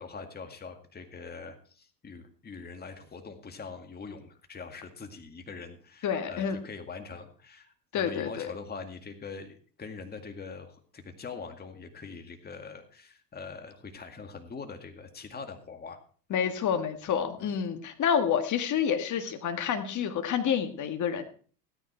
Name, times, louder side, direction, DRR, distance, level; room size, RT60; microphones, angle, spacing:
voice 1, 0.0-16.0 17.4-17.5, left 4 dB, 20° left, 5 dB, 2.1 m, -43 dB
voice 2, 6.0-6.6 7.9-8.5 16.3-21.2, left 8 dB, 40° left, 6 dB, 1.8 m, -28 dB
16.5 x 9.8 x 4.5 m, 0.43 s
hypercardioid pair, 95°, 47 cm